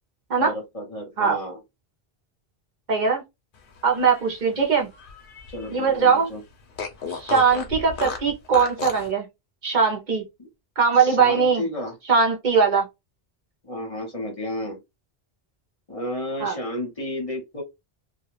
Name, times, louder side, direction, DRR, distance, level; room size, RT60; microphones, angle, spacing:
voice 1, 0.4-1.6 5.5-6.4 11.0-11.9 13.6-14.8 15.9-17.6, left 1 dB, 35° left, 1.0 m, -32 dB
voice 2, 2.9-3.2 3.8-4.9 5.7-6.3 7.1-9.3 9.6-10.2 10.8-11.6 12.1-12.9 16.4-16.6, right 5 dB, 50° right, 0.8 m, -20 dB
Fart, 3.8-5.8 6.1-6.2 6.8-9.1, left 5 dB, 60° left, 0.8 m, -34 dB
2.3 x 2.3 x 3.0 m
omnidirectional pair, 1.0 m